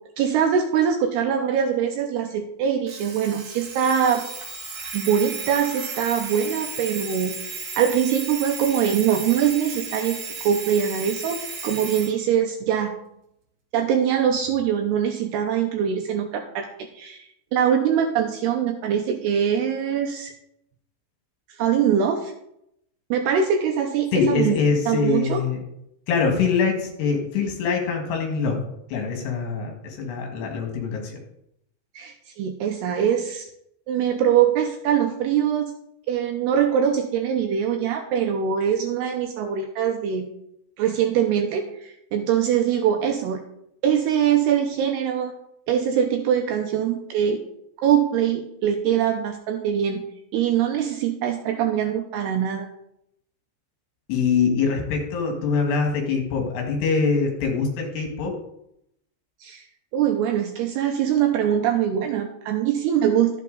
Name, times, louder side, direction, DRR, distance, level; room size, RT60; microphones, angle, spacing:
voice 1, 0.2-4.2 4.9-12.9 13.7-16.7 16.9-20.3 21.5-22.3 23.1-24.6 24.9-25.4 32.0-33.5 33.9-35.7 36.1-40.3 40.8-43.4 43.8-45.3 45.7-47.4 47.8-50.0 50.3-52.7 59.4-59.6 59.9-63.4, right 8 dB, 80° right, 4 dB, 2.4 m, -23 dB
Alarm, 2.9-12.1, right 4 dB, 45° right, 2.5 m, -35 dB
voice 2, 24.1-25.6 26.1-28.6 28.9-31.2 54.1-58.4, left 5 dB, 65° left, 2 dB, 3.6 m, -23 dB
12.5 x 8.2 x 3.9 m, 0.77 s
omnidirectional pair, 5.4 m